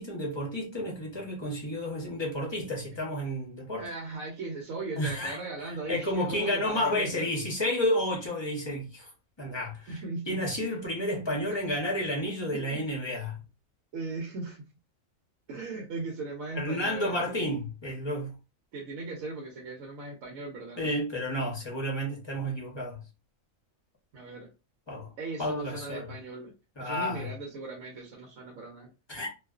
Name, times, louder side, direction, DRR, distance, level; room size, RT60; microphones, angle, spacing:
voice 1, 0.0-3.9 5.0-9.1 9.4-13.4 16.5-18.3 20.8-23.0 24.9-25.1 25.4-26.1 26.8-27.3 29.1-29.3, left 1 dB, 30° left, 0.6 m, -31 dB
voice 2, 3.8-7.3 9.9-10.4 11.2-11.6 12.5-12.9 13.9-14.7 15.5-17.5 18.7-21.0 24.1-24.5 25.2-26.5 26.8-28.9, right 3 dB, 85° right, 1.1 m, -38 dB
2.3 x 2.3 x 2.3 m
omnidirectional pair, 1.4 m